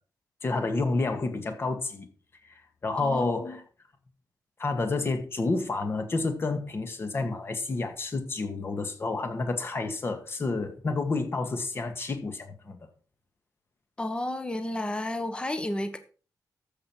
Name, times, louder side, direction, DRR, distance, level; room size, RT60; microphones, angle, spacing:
voice 1, 0.4-2.1 2.8-3.6 4.6-12.8, left 3 dB, 35° left, 1.9 m, -29 dB
voice 2, 3.0-3.6 14.0-16.0, left 1 dB, 15° left, 1.3 m, -32 dB
12.5 x 7.5 x 4.7 m
wide cardioid pair, 145°, 7 cm